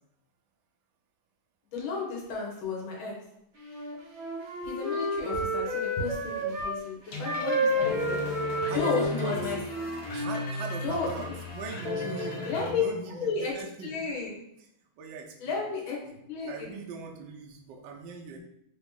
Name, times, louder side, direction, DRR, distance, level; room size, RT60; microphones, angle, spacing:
voice 1, 1.7-3.1 4.6-8.2 8.7-9.6 10.8-11.4 12.4-13.5 13.8-14.4 15.4-16.0 16.3-16.8, left 4 dB, 75° left, -2 dB, 1.8 m, -32 dB
Wind instrument woodwind instrument, 3.6-6.7 7.2-10.4, equal, 40° right, 0.7 m, -31 dB
sound 1, 7.1-12.7, left 3 dB, 60° left, 1.2 m, -35 dB
voice 2, 8.7-9.4 10.1-13.9 15.0-15.7 16.0-16.1 16.5-18.4, right 4 dB, 70° right, 0 dB, 1.1 m, -40 dB
3.9 x 3.0 x 3.5 m, 0.78 s
omnidirectional pair, 2.2 m